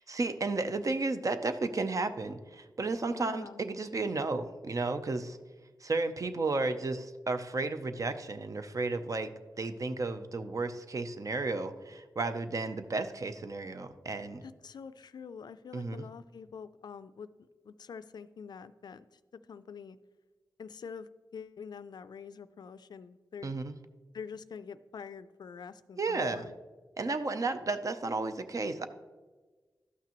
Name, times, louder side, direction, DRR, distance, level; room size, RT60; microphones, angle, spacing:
voice 1, 0.1-5.4 5.8-9.3 9.6-14.4 15.7-16.0 23.4-23.8 26.0-26.4 27.0-28.9, right 3 dB, 50° right, 10 dB, 0.6 m, -33 dB
voice 2, 3.1-3.6 14.4-17.3 17.6-19.1 19.3-20.0 20.6-23.5 24.1-26.5, left 6 dB, 75° left, 14 dB, 0.3 m, -45 dB
12.5 x 5.8 x 3.0 m, 1.3 s
cardioid pair, 65°, 7 cm